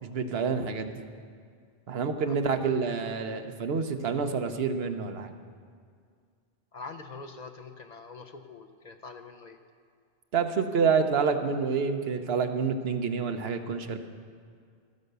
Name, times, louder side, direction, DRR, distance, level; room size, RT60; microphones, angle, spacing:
voice 1, 0.0-1.0 1.9-5.3 10.3-14.0, right 5 dB, 75° right, 7 dB, 1.1 m, -28 dB
voice 2, 6.7-9.6, left 4 dB, 45° left, 5 dB, 0.7 m, -44 dB
13.0 x 9.3 x 6.7 m, 2.1 s
omnidirectional pair, 1.0 m